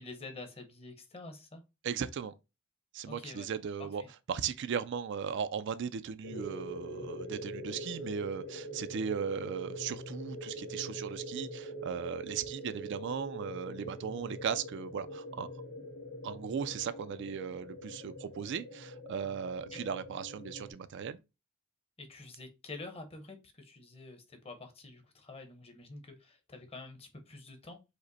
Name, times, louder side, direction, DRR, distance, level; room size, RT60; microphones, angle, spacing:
voice 1, 0.0-1.6 3.1-3.5 4.0-4.1 12.5-12.6 19.7-19.8 22.0-27.8, left 3 dB, 25° left, 0.8 m, -48 dB
voice 2, 1.8-2.3 2.9-4.0 4.3-15.5 16.2-21.2, right 7 dB, 55° right, 0.3 m, -37 dB
sound 1, 6.2-20.7, equal, 90° left, 2.0 m, -43 dB
5.0 x 2.1 x 3.9 m
head